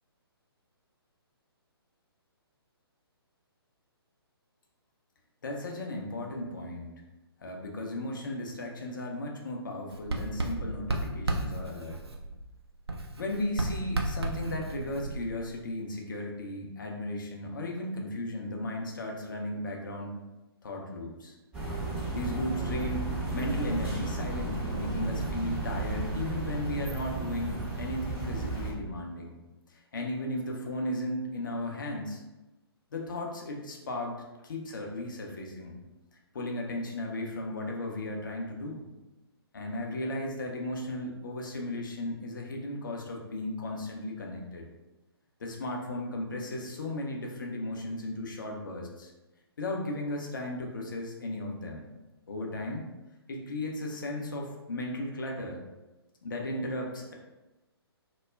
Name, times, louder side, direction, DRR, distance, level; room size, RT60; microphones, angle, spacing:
voice 1, 5.4-6.9 7.4-12.0 13.2-20.1 20.6-21.4 22.1-23.1 23.3-29.3 29.7-32.2 32.9-34.2 34.4-35.8 36.3-38.9 39.5-44.6 45.4-49.1 49.6-51.9 52.3-52.9 53.3-55.6 56.2-57.1, left 1 dB, 50° left, 0 dB, 0.5 m, -35 dB
Writing, 9.9-12.5 12.9-15.6, right 2 dB, 75° right, 0.5 m, -34 dB
sound 1, 21.5-28.7, right 2 dB, 10° right, 0.6 m, -33 dB
2.2 x 2.1 x 3.3 m, 1.0 s
figure-of-eight pair, 130°, 13 cm